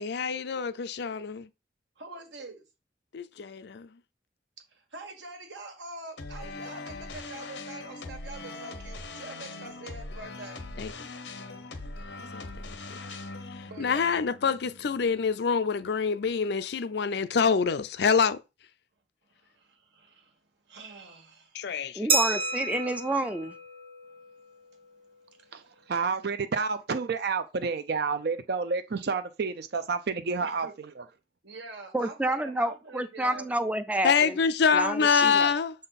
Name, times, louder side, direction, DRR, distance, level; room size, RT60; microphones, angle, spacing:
voice 1, 0.0-1.5 3.1-3.9 10.8-10.9 11.5-11.6 12.3-12.7 13.8-18.4 21.5-22.1 34.0-35.7, left 6 dB, 65° left, 0.5 m, -26 dB
voice 2, 2.0-2.6 4.7-10.6 13.6-14.2 19.3-20.4 20.7-21.6 24.7-24.8 25.3-25.7 30.4-30.7 31.4-33.5 35.2-35.3, right 3 dB, 85° right, 1.7 m, -45 dB
sound 1, 6.2-15.3, left 3 dB, 85° left, 0.9 m, -41 dB
voice 3, 21.9-23.5 31.9-34.4 34.7-35.5, right 1 dB, 10° right, 0.4 m, -29 dB
Glass, 22.1-24.6, right 3 dB, 30° right, 1.0 m, -30 dB
voice 4, 25.9-31.1, right 5 dB, 65° right, 0.5 m, -30 dB
6.5 x 3.8 x 4.1 m
head